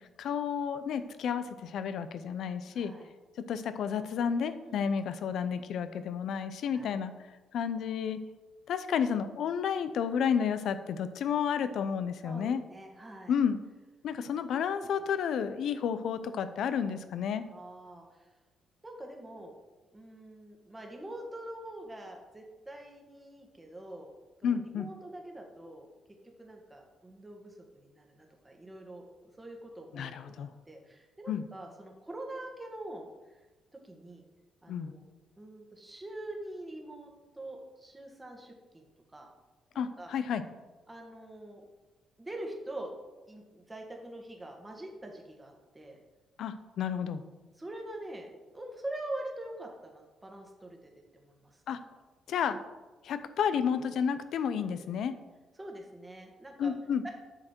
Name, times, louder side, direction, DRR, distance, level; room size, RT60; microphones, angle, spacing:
voice 1, 0.2-2.9 3.5-7.1 7.5-8.2 8.7-12.6 13.3-13.6 14.0-17.4 24.4-24.9 29.9-30.5 31.3-31.4 34.7-34.9 39.8-40.4 46.4-47.2 51.7-51.8 52.3-52.6 53.0-55.1 56.6-57.0, left 7 dB, 70° left, 12 dB, 0.6 m, -31 dB
voice 2, 2.7-3.1 4.6-4.8 6.7-7.0 12.2-13.4 17.5-18.3 18.8-19.5 19.9-24.1 24.4-25.9 26.2-29.0 29.4-30.1 30.3-33.4 33.7-34.2 34.6-35.0 35.4-38.8 39.1-39.3 39.7-40.1 40.9-41.6 42.2-42.9 43.3-46.0 47.6-48.3 48.5-51.6 54.7-54.9 55.6-56.7 57.0-57.1, right 1 dB, 15° right, 1 dB, 1.5 m, -44 dB
8.0 x 6.6 x 4.5 m, 1.2 s
cardioid pair, 90°, 0 cm